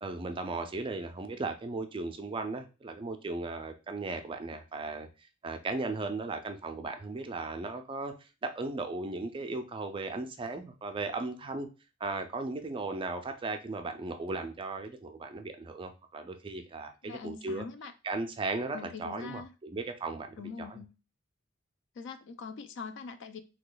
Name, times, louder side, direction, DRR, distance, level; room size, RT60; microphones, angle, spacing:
voice 1, 0.0-5.1 5.4-11.7 12.0-17.7 18.0-20.8, right 3 dB, 25° right, 0.4 m, -36 dB
voice 2, 17.0-17.9 18.7-19.5 20.4-21.0 22.0-23.4, left 5 dB, 60° left, 0.4 m, -43 dB
2.8 x 2.3 x 3.8 m
head